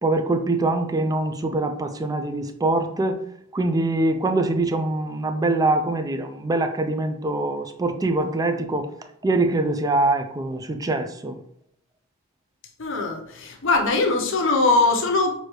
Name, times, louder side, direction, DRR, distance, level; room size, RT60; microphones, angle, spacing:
voice 1, 0.0-3.2 3.5-8.9 9.2-11.4, right 2 dB, 15° right, 8 dB, 0.4 m, -23 dB
voice 2, 12.8-15.4, left 3 dB, 65° left, 3 dB, 0.8 m, -21 dB
6.2 x 2.7 x 3.1 m, 0.69 s
head